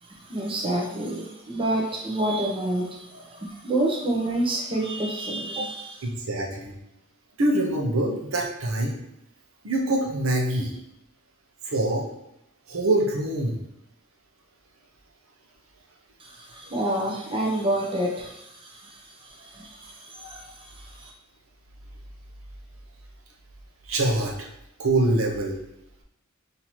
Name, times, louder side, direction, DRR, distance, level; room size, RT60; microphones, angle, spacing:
voice 1, 0.0-6.1 16.2-21.1, right 1 dB, 25° right, -2 dB, 0.8 m, -29 dB
voice 2, 6.0-6.7 7.4-8.9 9.6-10.7 11.6-12.0 12.7-13.6 23.9-24.5 24.8-25.6, right 2 dB, 75° right, -1 dB, 0.7 m, -24 dB
5.6 x 2.8 x 3.0 m, 0.82 s
head